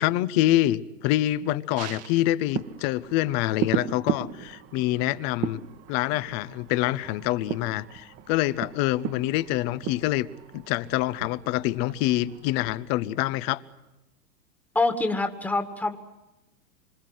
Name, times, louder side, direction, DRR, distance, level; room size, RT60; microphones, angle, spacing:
voice 1, 0.0-5.6 5.9-10.3 10.5-13.6, left 15 dB, 40° left, 16 dB, 1.3 m, -26 dB
sound 1, 1.8-13.4 13.8-13.9, right 10 dB, 30° right, 1.7 m, -36 dB
voice 2, 14.7-16.0, left 2 dB, 5° left, 6 dB, 2.1 m, -25 dB
26.5 x 26.0 x 7.9 m, 0.99 s
hypercardioid pair, 115°, 48 cm